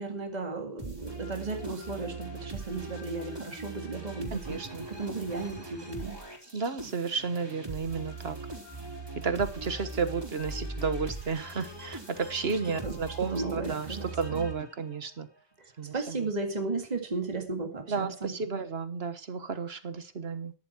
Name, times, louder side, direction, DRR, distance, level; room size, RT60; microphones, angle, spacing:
voice 1, 0.0-6.2 12.5-14.5 15.6-18.3, right 3 dB, 35° right, 4 dB, 2.2 m, -35 dB
sound 1, 0.8-15.0, right 2 dB, 20° right, 3.7 m, -41 dB
voice 2, 4.3-4.8 6.5-8.4 9.2-15.3 15.8-16.2 17.9-20.5, right 5 dB, 60° right, 11 dB, 1.6 m, -32 dB
13.5 x 11.0 x 4.4 m, 0.36 s
omnidirectional pair, 1.2 m